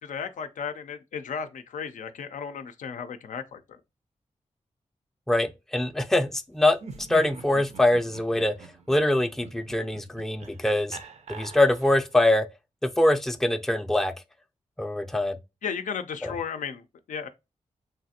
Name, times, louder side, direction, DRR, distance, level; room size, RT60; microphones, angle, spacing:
voice 1, 0.0-3.8 15.6-17.3, left 6 dB, 85° left, 0.4 m, -35 dB
voice 2, 5.3-8.5 8.9-11.0 11.3-12.5 12.8-14.1 14.8-15.4 16.2-16.3, left 1 dB, 5° left, 0.3 m, -23 dB
Laughter, 6.7-12.2, right 5 dB, 60° right, 0.5 m, -45 dB
3.2 x 2.4 x 2.7 m
cardioid pair, 70°, 13 cm